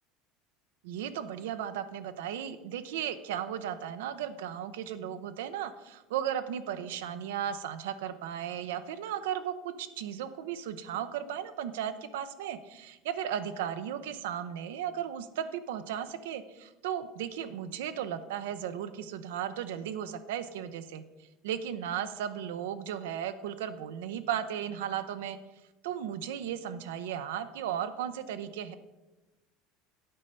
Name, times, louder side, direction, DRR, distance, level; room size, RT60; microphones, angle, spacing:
voice 1, 0.8-21.0 21.4-25.4 25.8-28.7, right 9 dB, 85° right, 12 dB, 0.5 m, -35 dB
8.7 x 4.3 x 5.2 m, 1.1 s
supercardioid pair, 105°, 0 cm